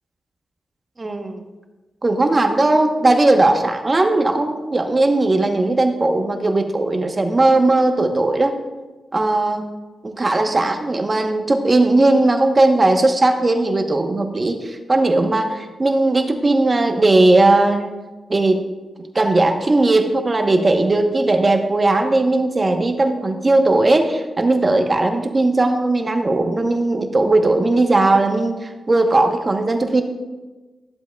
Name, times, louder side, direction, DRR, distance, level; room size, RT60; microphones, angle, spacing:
voice 1, 1.0-1.4 2.0-8.6 9.1-9.6 10.0-17.9 18.3-18.6 19.1-30.0, right 2 dB, 30° right, 5 dB, 1.0 m, -17 dB
13.5 x 7.6 x 2.3 m, 1.2 s
cardioid pair, 80°, 0 cm